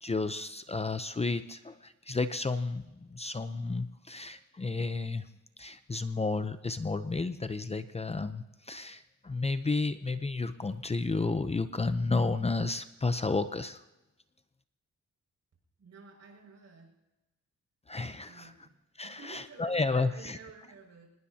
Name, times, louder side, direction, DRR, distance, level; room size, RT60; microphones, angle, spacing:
voice 1, 0.0-5.3 5.6-13.8 17.9-18.5 19.0-20.4, left 3 dB, 20° left, 10 dB, 0.7 m, -32 dB
voice 2, 15.8-16.9 18.2-18.8 19.0-21.1, right 4 dB, 65° right, -1 dB, 6.2 m, -51 dB
25.0 x 20.0 x 2.9 m, 1.0 s
cardioid pair, 105°, 29 cm